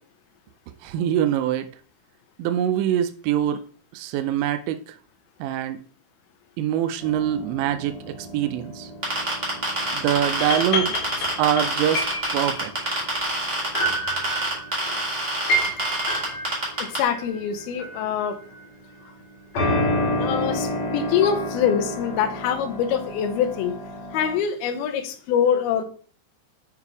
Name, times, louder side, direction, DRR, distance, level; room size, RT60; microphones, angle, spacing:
voice 1, 0.8-1.7 2.4-3.7 3.9-5.0 5.4-5.8 6.6-8.9 9.9-12.1 12.3-13.0, right 10 dB, 85° right, 2.7 m, -24 dB
sound 1, 7.0-18.6 19.5-24.4, left 1 dB, 50° left, 2.3 m, -30 dB
sound 2, 9.0-17.0, right 2 dB, 25° right, 1.6 m, -26 dB
voice 2, 16.8-18.4 20.2-23.8 24.1-25.8, left 8 dB, 75° left, 2.4 m, -24 dB
8.2 x 3.7 x 4.6 m
omnidirectional pair, 5.4 m